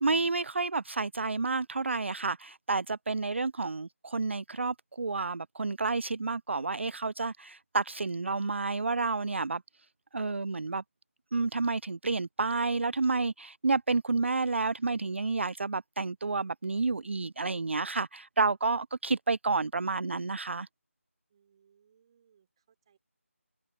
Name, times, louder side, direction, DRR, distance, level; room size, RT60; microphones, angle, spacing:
voice 1, 0.0-9.6 10.1-10.8 11.3-20.7, right 3 dB, 55° right, 0.3 m, -30 dB
voice 2, 21.3-23.0, right 8 dB, 20° right, 3.7 m, -67 dB
figure-of-eight pair, 165°, 8 cm